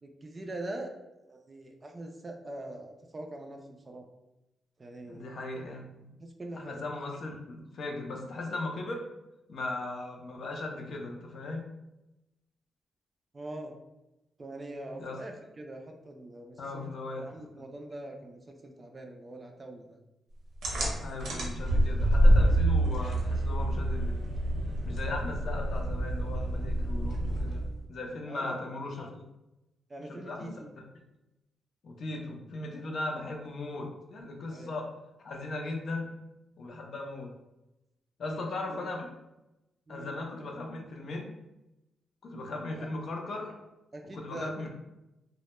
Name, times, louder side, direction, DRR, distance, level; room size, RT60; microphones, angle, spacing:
voice 1, 0.0-0.9 1.2-4.0 4.8-5.5 6.2-6.8 13.3-13.8 14.4-16.9 17.2-20.0 28.3-28.6 29.9-30.7 34.5-34.7 38.3-38.9 39.9-40.1 42.7-42.9 43.9-44.7, right 1 dB, 25° right, 3 dB, 0.3 m, -43 dB
voice 2, 5.1-6.1 6.5-9.0 9.5-11.7 15.0-15.2 16.6-17.3 21.0-24.3 24.8-27.6 27.9-29.3 30.1-30.5 30.9-31.0 31.8-34.9 35.2-36.1 36.6-37.3 38.2-39.1 39.9-41.3 42.2-43.6 44.1-44.7, left 2 dB, 60° left, 2 dB, 0.5 m, -38 dB
sound 1, 20.6-27.8, right 1 dB, 75° right, 0.7 m, -27 dB
2.1 x 2.1 x 2.9 m, 0.94 s
cardioid pair, 115°, 0 cm